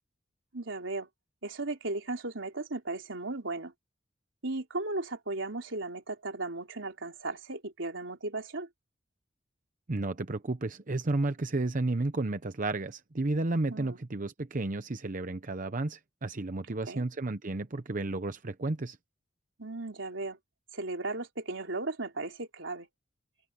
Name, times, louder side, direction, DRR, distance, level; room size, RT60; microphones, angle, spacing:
voice 1, 0.5-1.1 1.4-3.7 4.4-8.7 13.7-14.0 16.7-17.0 19.6-20.4 20.7-22.9, right 2 dB, 85° right, 3.5 m, -36 dB
voice 2, 9.9-19.0, right 2 dB, 45° right, 0.8 m, -32 dB
head